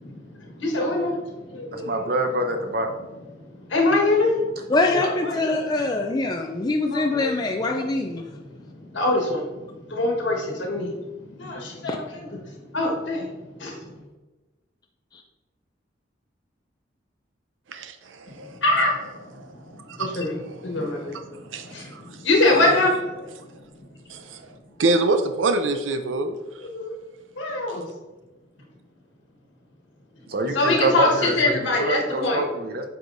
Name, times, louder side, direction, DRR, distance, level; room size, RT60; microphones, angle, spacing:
voice 1, 0.0-2.1 3.7-4.3 4.9-5.4 6.9-7.3 7.6-7.8 8.9-9.4 9.9-10.9 11.4-12.0 12.7-13.3 13.6-13.8 18.6-18.9 20.0-20.3 20.6-21.2 21.7-23.0 26.6-26.9 27.4-27.8 30.5-32.4, left 2 dB, 75° left, 1.4 m, -23 dB
voice 2, 1.7-2.9 30.3-32.9, right 1 dB, 55° right, 0.7 m, -25 dB
voice 3, 4.7-8.2 11.8-12.0 15.1-15.2, left 2 dB, 20° left, 0.4 m, -24 dB
voice 4, 17.7-18.6 19.4-19.5 19.9-22.2 24.1-26.4, right 2 dB, 90° right, 0.5 m, -27 dB
8.2 x 4.8 x 2.6 m
head